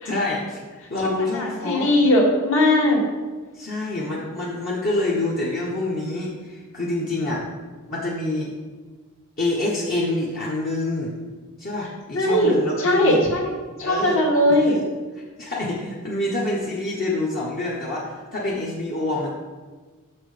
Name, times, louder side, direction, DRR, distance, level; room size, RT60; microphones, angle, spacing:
voice 1, 0.0-1.9 3.5-7.5 7.9-8.5 9.4-11.1 11.6-13.2 13.8-14.2 14.5-14.7 15.1-19.3, left 2 dB, 40° left, -5 dB, 1.0 m, -27 dB
voice 2, 1.0-3.0 12.1-12.5 12.8-13.5 13.8-14.8, left 1 dB, 60° left, -2 dB, 1.7 m, -19 dB
6.5 x 6.1 x 4.9 m, 1.4 s
head